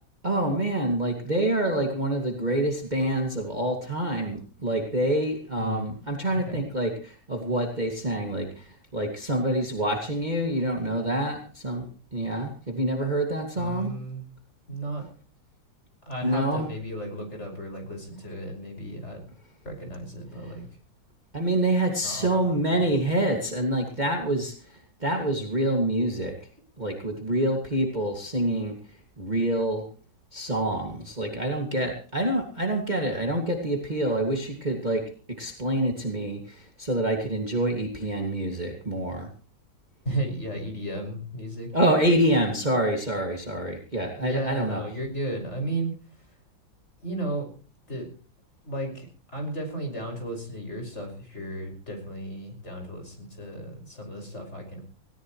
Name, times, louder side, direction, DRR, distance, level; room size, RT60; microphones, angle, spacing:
voice 1, 0.2-13.9 16.2-16.7 20.4-20.5 21.3-24.5 25.0-26.3 26.8-28.7 29.2-29.8 30.3-35.0 35.4-39.3 41.7-44.8, right 1 dB, 25° right, 2 dB, 2.3 m, -26 dB
voice 2, 5.6-5.9 6.3-6.6 13.5-14.2 14.7-15.0 16.1-19.3 19.6-20.6 22.0-23.0 40.0-41.7 44.1-46.4 47.0-47.5 47.9-48.1 48.6-49.1 49.3-54.8, right 1 dB, 35° left, 3 dB, 6.1 m, -34 dB
19.0 x 18.0 x 3.1 m, 0.38 s
omnidirectional pair, 2.0 m